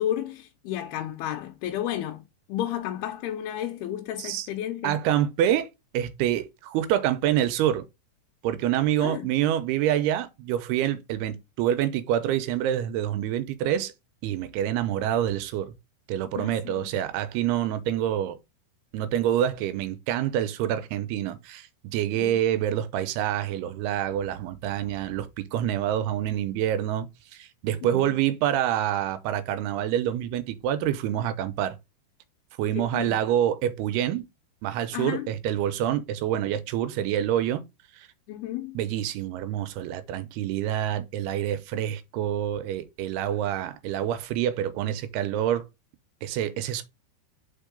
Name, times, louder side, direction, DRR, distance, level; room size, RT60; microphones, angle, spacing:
voice 1, 0.0-5.0 9.0-9.3 16.4-16.9 22.1-22.4 27.8-28.2 32.6-33.2 34.9-35.3 38.3-38.8, left 11 dB, 85° left, 2.8 m, -32 dB
voice 2, 4.8-5.7 5.9-7.9 8.4-13.9 14.2-15.7 16.1-18.4 18.9-27.1 27.3-31.8 32.6-34.3 34.6-37.6 38.0-38.1 38.8-45.7 46.2-46.8, right 11 dB, 85° right, 2.8 m, -27 dB
5.4 x 4.6 x 5.1 m
omnidirectional pair, 4.6 m